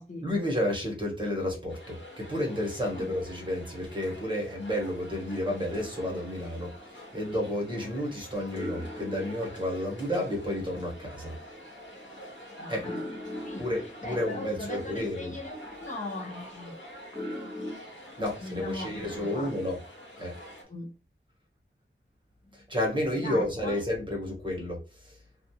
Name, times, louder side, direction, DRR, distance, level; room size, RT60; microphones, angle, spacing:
voice 1, 0.2-11.4 12.7-12.9 13.6-15.3 18.2-19.8 20.2-20.3 22.5-25.2, left 1 dB, 25° right, 1.1 m, -31 dB
sound 1, 1.7-20.6, equal, 70° left, 1.1 m, -47 dB
sound 2, 5.6-8.1 8.5-17.8, left 1 dB, 15° left, 0.8 m, -43 dB
voice 2, 12.6-13.2 13.4-16.9 18.4-19.6 20.7-20.9 23.2-23.8, left 2 dB, 40° left, 0.6 m, -39 dB
2.3 x 2.3 x 2.8 m
wide cardioid pair, 70°, 20 cm